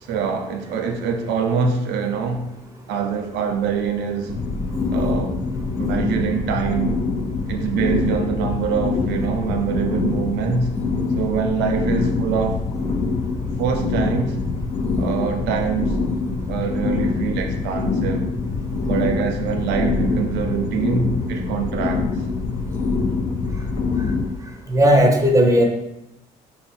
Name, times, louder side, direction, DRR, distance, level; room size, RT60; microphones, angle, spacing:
voice 1, 0.0-2.5 2.9-4.3 4.9-5.4 5.8-7.0 7.5-10.7 11.1-12.6 13.6-14.4 15.0-16.0 16.5-18.3 18.8-22.1, right 6 dB, 90° right, 5 dB, 0.6 m, -24 dB
sound 1, 4.3-24.3, left 4 dB, 30° left, 0.4 m, -24 dB
voice 2, 24.7-25.6, equal, 20° right, 2 dB, 0.6 m, -15 dB
3.7 x 2.1 x 4.2 m, 0.87 s
cardioid pair, 110°, 17 cm